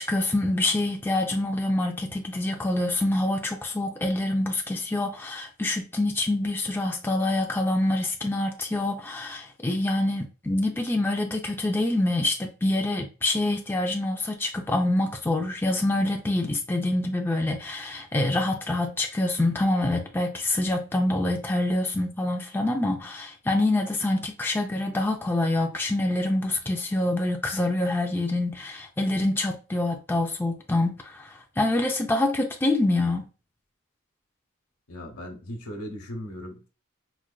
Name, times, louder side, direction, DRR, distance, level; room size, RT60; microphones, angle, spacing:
voice 1, 0.0-33.3, left 2 dB, 10° left, 0.4 m, -26 dB
voice 2, 34.9-36.7, equal, 85° left, 0.9 m, -38 dB
4.3 x 2.5 x 2.2 m
head